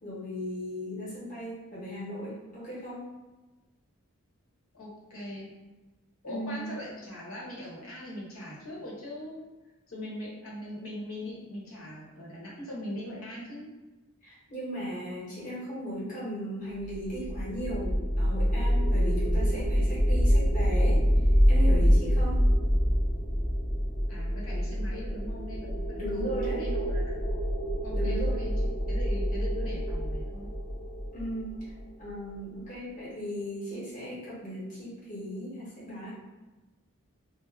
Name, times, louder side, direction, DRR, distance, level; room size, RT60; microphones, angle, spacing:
voice 1, 0.0-3.0 6.2-6.7 14.2-21.0 21.5-22.4 26.0-26.6 27.9-28.4 31.1-31.6 32.0-36.1, equal, 35° left, -8 dB, 1.0 m, -37 dB
voice 2, 4.7-5.5 6.2-9.4 9.9-13.7 24.1-27.5 27.8-28.5 28.9-30.5, left 1 dB, 75° left, -5 dB, 0.9 m, -41 dB
sound 1, 16.9-32.1, equal, 20° left, 0.5 m, -26 dB
2.3 x 2.0 x 3.2 m, 1.1 s
head